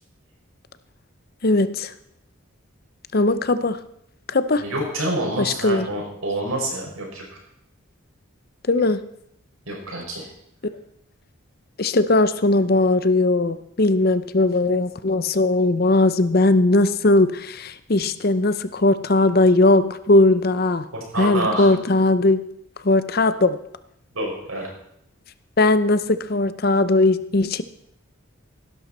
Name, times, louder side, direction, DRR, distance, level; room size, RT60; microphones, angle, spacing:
voice 1, 1.4-1.9 3.1-3.8 4.3-4.6 5.4-5.9 8.7-9.0 11.8-20.9 21.2-22.4 22.8-23.6 25.6-27.6, left 2 dB, 45° left, 13 dB, 0.6 m, -19 dB
voice 2, 4.5-7.2 9.7-10.3 20.9-21.7 24.1-24.7, right 1 dB, 90° right, -1 dB, 5.6 m, -27 dB
16.0 x 12.0 x 4.3 m, 0.76 s
head